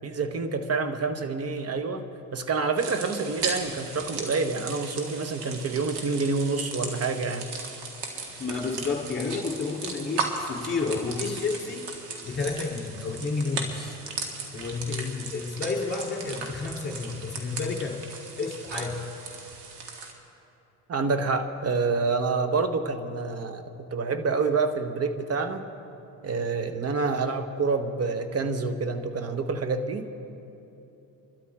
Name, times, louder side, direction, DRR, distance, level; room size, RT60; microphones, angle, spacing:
voice 1, 0.0-7.5 20.9-25.6 26.2-30.1, right 4 dB, 35° right, 9 dB, 1.2 m, -27 dB
sound 1, 2.8-20.1, right 4 dB, 60° right, 2.2 m, -37 dB
voice 2, 8.4-11.8 12.2-14.0 14.5-18.0 18.4-19.1, left 4 dB, 20° left, -1 dB, 3.3 m, -31 dB
27.0 x 12.5 x 3.7 m, 2.9 s
hypercardioid pair, 65°, 45 cm